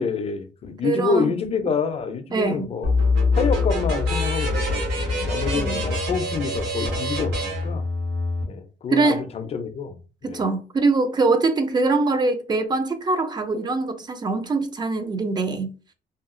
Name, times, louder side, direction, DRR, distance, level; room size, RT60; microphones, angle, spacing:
voice 1, 0.0-2.9 3.3-7.8 8.5-10.0 10.2-10.4, left 5 dB, 35° left, 0.5 m, -27 dB
voice 2, 0.8-1.3 2.3-2.7 5.5-5.8 8.9-9.2 10.2-15.7, right 3 dB, 25° right, 0.5 m, -23 dB
sound 1, 2.8-8.4, left 2 dB, 85° right, 1.1 m, -24 dB
2.8 x 2.3 x 2.5 m
cardioid pair, 110°, 17 cm